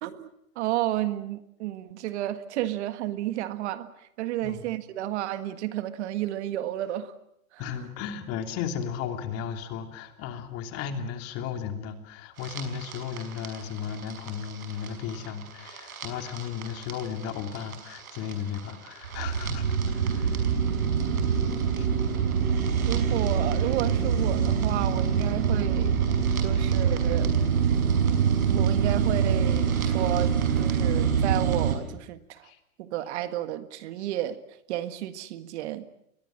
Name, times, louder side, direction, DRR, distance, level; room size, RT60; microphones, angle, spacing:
voice 1, 0.0-7.1 7.5-7.6 22.9-26.0 26.4-27.4 28.5-32.5 32.8-34.4 34.7-35.9, right 13 dB, 50° right, 11 dB, 1.8 m, -32 dB
voice 2, 7.6-20.5 21.8-21.9 32.4-32.6, left 7 dB, 35° left, 6 dB, 3.1 m, -35 dB
sound 1, 12.4-31.8, right 7 dB, 75° right, 5.8 m, -25 dB
28.0 x 22.5 x 7.5 m, 0.74 s
hypercardioid pair, 140°, 42 cm